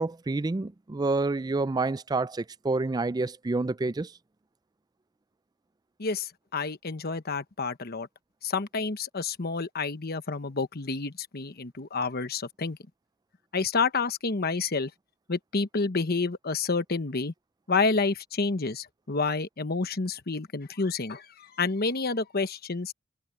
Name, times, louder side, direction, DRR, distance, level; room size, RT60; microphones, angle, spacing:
voice 1, 0.0-4.1, right 3 dB, 20° right, 0.4 m, -28 dB
voice 2, 6.0-8.1 8.4-12.8 13.5-14.9 15.3-17.3 17.7-22.9, left 4 dB, 50° left, 1.1 m, -29 dB
head